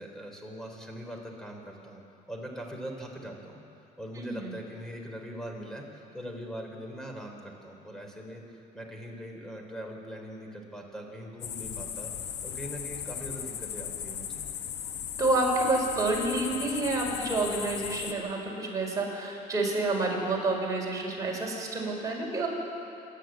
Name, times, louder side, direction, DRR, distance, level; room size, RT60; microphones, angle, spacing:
voice 1, 0.0-2.0 2.3-3.6 4.0-14.4, equal, 5° left, 1 dB, 3.8 m, -41 dB
voice 2, 4.2-4.5 15.2-22.5, right 2 dB, 20° right, -2 dB, 5.5 m, -29 dB
sound 1, 11.4-18.1, left 9 dB, 85° left, 1.5 m, -37 dB
27.5 x 10.5 x 9.0 m, 2.8 s
cardioid pair, 110°, 17 cm